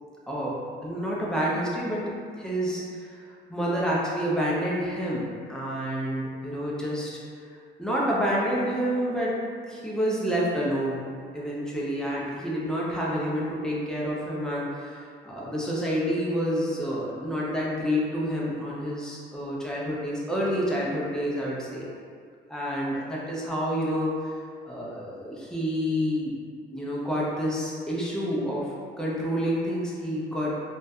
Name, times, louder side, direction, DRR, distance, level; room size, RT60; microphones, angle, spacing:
voice 1, 0.3-0.6 0.8-2.0 2.4-3.2 3.5-7.1 7.8-9.3 9.7-11.0 11.3-21.9 22.5-24.3 24.6-26.3 26.7-30.5, equal, 5° left, -6 dB, 0.5 m, -28 dB
2.5 x 2.3 x 2.2 m, 2.2 s
cardioid pair, 90°, 20 cm